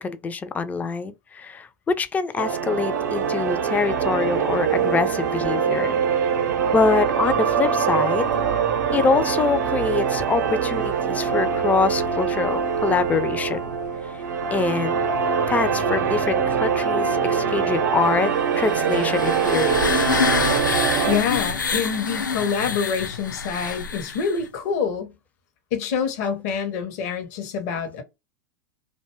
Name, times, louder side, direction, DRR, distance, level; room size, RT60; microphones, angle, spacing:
voice 1, 0.0-6.0 6.7-8.4 8.9-13.6 14.5-15.0 15.5-20.0, left 4 dB, 15° left, 0.3 m, -25 dB
sound 1, 2.4-21.2, right 6 dB, 70° right, 0.6 m, -23 dB
sound 2, 18.6-24.4, left 5 dB, 90° left, 0.4 m, -26 dB
voice 2, 21.1-25.1 25.7-28.0, left 6 dB, 55° left, 0.7 m, -26 dB
2.5 x 2.2 x 3.0 m
hypercardioid pair, 90°, 10 cm